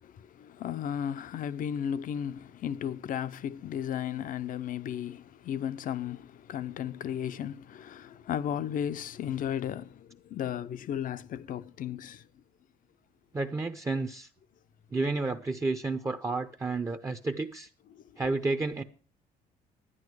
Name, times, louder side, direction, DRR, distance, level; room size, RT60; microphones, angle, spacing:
voice 1, 0.0-12.3 17.9-18.0, left 9 dB, 55° left, 0.7 m, -35 dB
voice 2, 13.3-14.3 14.9-17.7 18.2-18.8, right 3 dB, 15° right, 0.7 m, -31 dB
11.0 x 10.5 x 4.7 m
cardioid pair, 110°, 17 cm